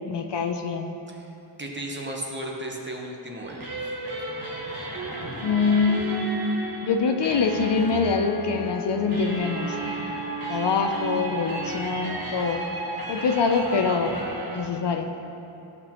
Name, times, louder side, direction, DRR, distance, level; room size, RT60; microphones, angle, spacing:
voice 1, 0.1-0.9 5.4-6.3 6.8-9.8 10.5-12.6 13.1-14.2 14.5-15.1, left 5 dB, 60° left, 5 dB, 0.6 m, -24 dB
voice 2, 1.6-3.8, right 1 dB, 25° right, -1 dB, 1.0 m, -35 dB
sound 1, 3.4-14.6, right 2 dB, 45° right, 1.6 m, -33 dB
13.0 x 6.0 x 3.0 m, 3.0 s
wide cardioid pair, 100°, 48 cm